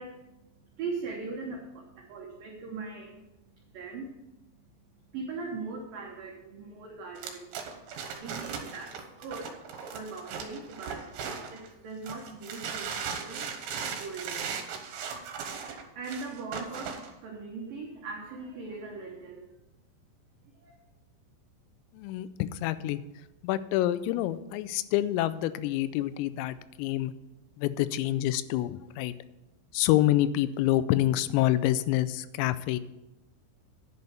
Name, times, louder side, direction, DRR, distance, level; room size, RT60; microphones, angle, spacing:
voice 1, 0.0-4.6 5.0-7.7 8.0-9.5 9.9-13.5 14.0-14.5 15.1-19.5 20.6-20.8, right 4 dB, 90° right, -1 dB, 1.9 m, -41 dB
sound 1, 7.2-11.7 12.1-17.1, right 6 dB, 70° right, 3.0 m, -37 dB
voice 2, 21.9-23.0 23.4-27.1 27.6-29.1 29.7-32.8, left 14 dB, 90° left, 15 dB, 3.2 m, -27 dB
11.0 x 5.5 x 6.8 m, 0.96 s
omnidirectional pair, 5.8 m